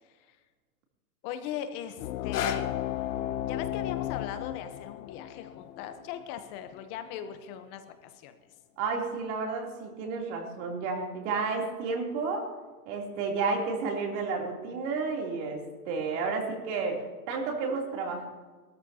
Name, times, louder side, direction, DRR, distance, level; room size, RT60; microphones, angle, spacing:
voice 1, 1.2-2.6 3.4-8.3, left 9 dB, 40° left, 8 dB, 1.0 m, -39 dB
sound 1, 2.0-7.1, left 14 dB, 70° left, 0.6 m, -35 dB
sound 2, 2.1-8.1 8.8-8.9, left 7 dB, 85° left, 1.4 m, -41 dB
voice 2, 8.8-12.5 12.8-18.3, right 4 dB, 50° right, 0 dB, 3.3 m, -31 dB
20.5 x 13.5 x 2.9 m, 1.4 s
supercardioid pair, 140°, 45 cm